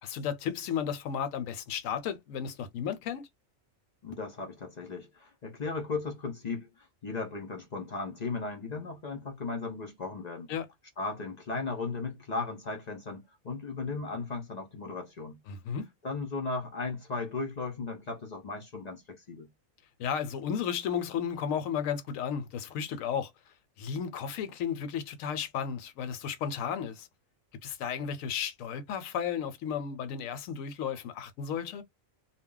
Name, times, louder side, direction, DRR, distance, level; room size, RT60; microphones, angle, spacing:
voice 1, 0.0-3.2 10.5-10.7 15.5-15.9 20.0-23.3 23.8-27.1 27.6-31.8, left 8 dB, 75° left, 1.0 m, -33 dB
voice 2, 4.0-10.5 11.0-15.4 16.0-19.5, left 3 dB, 50° left, 0.5 m, -36 dB
2.3 x 2.0 x 3.6 m
omnidirectional pair, 1.4 m